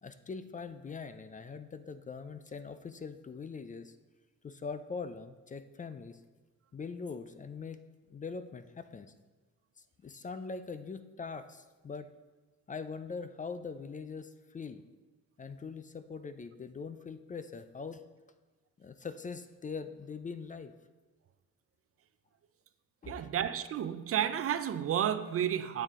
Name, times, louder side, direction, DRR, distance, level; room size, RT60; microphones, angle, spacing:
voice 1, 0.0-4.0 4.4-6.2 6.7-7.8 8.1-9.1 9.8-12.1 12.7-14.8 15.4-18.0 18.8-20.7 23.0-23.3, left 5 dB, 25° left, 0.4 m, -42 dB
voice 2, 23.1-25.8, right 9 dB, 50° right, 0.5 m, -31 dB
9.1 x 6.8 x 3.7 m
cardioid pair, 90°, 30 cm